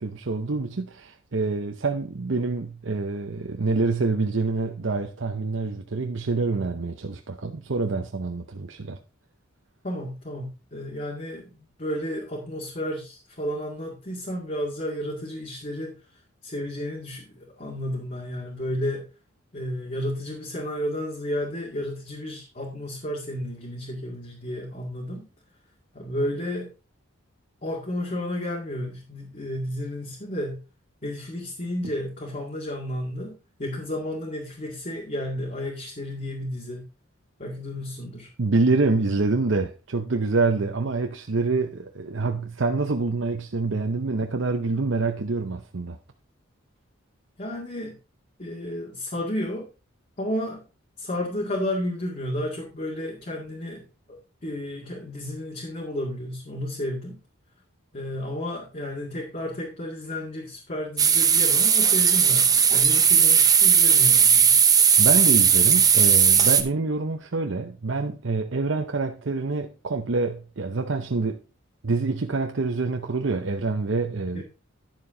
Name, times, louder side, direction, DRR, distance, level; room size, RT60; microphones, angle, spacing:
voice 1, 0.0-9.0 38.4-46.0 65.0-71.4 71.8-74.4, right 3 dB, 60° right, 0.8 m, -26 dB
voice 2, 9.8-15.9 16.4-19.1 19.5-25.3 25.9-26.7 27.6-30.6 31.0-36.9 37.4-38.3 47.4-48.0 48.4-49.7 50.2-50.6 51.0-57.2 57.9-64.6 74.3-74.4, left 1 dB, 35° left, 2.1 m, -32 dB
sound 1, 61.0-66.6, right 7 dB, 20° right, 0.7 m, -17 dB
10.5 x 7.1 x 3.8 m
head